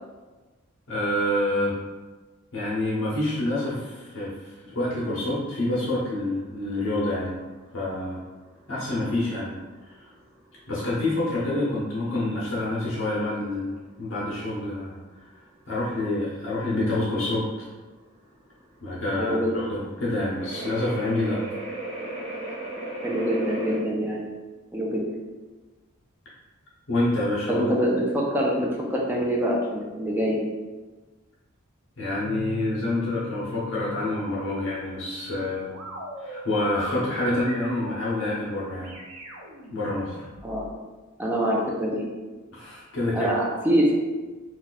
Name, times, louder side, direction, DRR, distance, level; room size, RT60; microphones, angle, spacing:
voice 1, 0.9-1.8 2.5-7.4 7.7-8.2 8.7-9.6 9.9-10.0 10.7-15.0 15.7-17.5 18.8-21.4 26.9-27.7 32.0-35.7 36.2-39.0 39.7-40.2 42.5-43.3, left 1 dB, 60° left, -7 dB, 0.9 m, -27 dB
sound 1, 6.1-23.8, right 1 dB, 30° right, 0.7 m, -39 dB
voice 2, 19.2-19.6 23.0-24.2 24.7-25.1 27.5-30.4 40.4-40.7 41.2-42.0 43.1-43.9, equal, 10° right, -3 dB, 0.5 m, -25 dB
sound 2, 32.1-40.7, equal, 85° right, 0.7 m, -41 dB
2.7 x 2.3 x 3.9 m, 1.3 s
head